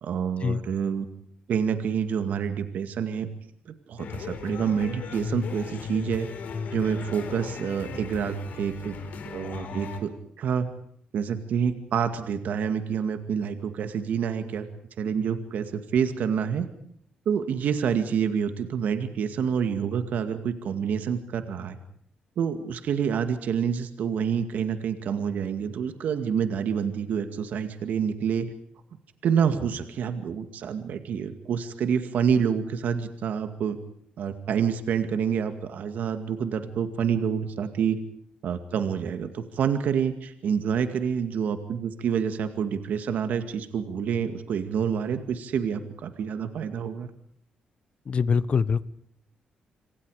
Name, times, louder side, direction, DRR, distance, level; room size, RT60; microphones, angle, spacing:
voice 1, 0.0-1.1 1.5-3.3 3.7-6.3 6.7-9.0 9.3-10.1 10.4-10.7 11.1-14.7 15.0-16.7 17.3-21.8 22.4-28.5 29.2-33.8 34.2-38.0 38.4-47.1, right 7 dB, 70° right, 9 dB, 2.2 m, -27 dB
sound 1, 4.0-10.0, left 5 dB, 65° left, 4.6 m, -36 dB
voice 2, 48.1-48.8, left 5 dB, 45° left, 17 dB, 1.1 m, -23 dB
27.0 x 26.0 x 5.0 m, 0.65 s
cardioid pair, 125°, 3 cm